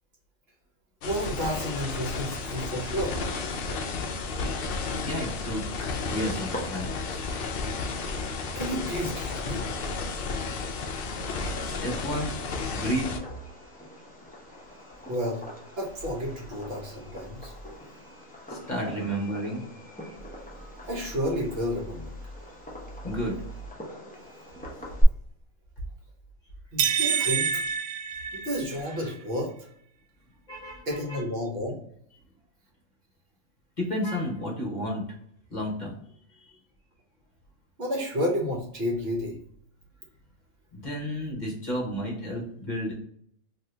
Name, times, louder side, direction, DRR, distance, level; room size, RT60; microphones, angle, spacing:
sound 1, 1.0-13.2, left 4 dB, 70° left, 0.5 m, -32 dB
voice 1, 1.0-3.2 8.5-9.6 15.1-15.4 15.8-17.5 20.9-22.1 26.7-27.6 28.3-29.5 30.9-31.8 37.8-39.4, equal, 50° right, -1 dB, 1.0 m, -31 dB
voice 2, 5.0-7.3 10.9-12.4 12.7-13.1 18.5-19.6 23.0-23.4 30.5-31.2 33.8-35.0 35.5-36.0 36.4-36.5 40.7-42.9, equal, 35° left, -2 dB, 1.0 m, -32 dB
Fireworks, 6.0-25.0, equal, 15° left, 0.3 m, -42 dB
sound 2, 26.8-28.9, right 7 dB, 85° right, 1.0 m, -27 dB
2.7 x 2.6 x 3.2 m, 0.67 s
omnidirectional pair, 1.4 m